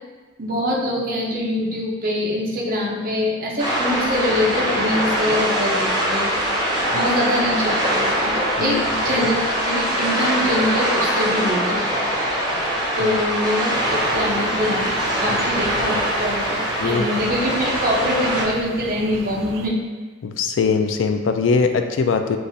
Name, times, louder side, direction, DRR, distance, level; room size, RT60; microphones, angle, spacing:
voice 1, 0.4-6.3 6.9-12.4 13.0-14.9 15.2-19.7, left 1 dB, 45° right, -3 dB, 0.8 m, -24 dB
sound 1, 3.6-18.4, equal, 20° right, 0.9 m, -22 dB
sound 2, 13.7-19.7, right 4 dB, 80° right, 0.3 m, -36 dB
voice 2, 20.2-22.4, left 5 dB, 75° left, 7 dB, 0.3 m, -21 dB
6.6 x 2.5 x 2.7 m, 1.3 s
head